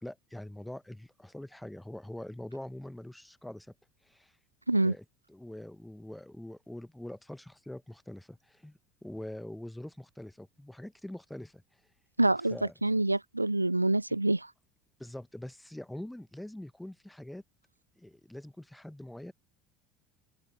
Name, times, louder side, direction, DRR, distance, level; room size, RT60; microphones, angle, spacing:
voice 1, 0.0-3.7 4.0-4.3 4.8-11.6 12.5-12.7 14.1-14.2 15.0-17.4 18.0-19.3, left 1 dB, 5° left, 1.3 m, -44 dB
voice 2, 12.2-12.6 12.8-14.5, right 2 dB, 90° right, 0.4 m, -26 dB
open air
figure-of-eight pair, 70°, 0 cm